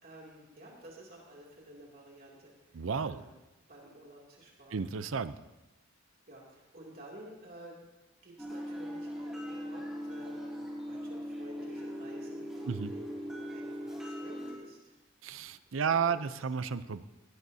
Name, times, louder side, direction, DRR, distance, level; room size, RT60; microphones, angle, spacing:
voice 1, 0.0-3.3 3.7-4.8 6.3-7.8 8.2-15.0 15.7-16.3, right 1 dB, 45° right, -3 dB, 2.7 m, -52 dB
voice 2, 2.7-3.2 4.7-5.4 12.7-12.9 15.2-17.0, right 6 dB, 75° right, 13 dB, 0.6 m, -32 dB
sound 1, 8.4-14.5, equal, 5° right, 3.7 m, -40 dB
18.0 x 17.5 x 2.8 m, 1.1 s
head